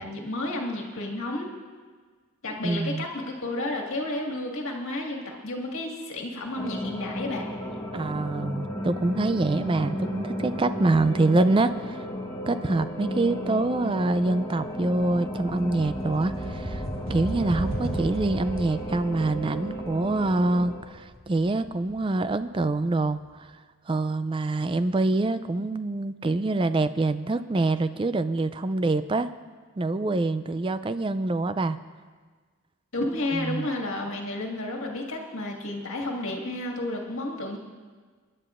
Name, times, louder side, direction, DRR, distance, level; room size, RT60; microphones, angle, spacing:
voice 1, 0.0-1.5 2.4-7.5 32.9-37.6, left 2 dB, 70° left, 0 dB, 1.8 m, -31 dB
voice 2, 2.6-3.0 7.9-12.0 12.5-16.8 17.1-23.5 23.9-29.3 29.8-31.8 33.3-33.7, right 2 dB, 25° right, 12 dB, 0.3 m, -25 dB
sound 1, 6.6-20.8, equal, 20° left, 1.1 m, -34 dB
sound 2, 13.8-22.7, right 1 dB, 60° right, 1.6 m, -37 dB
25.0 x 11.0 x 2.5 m, 1.5 s
head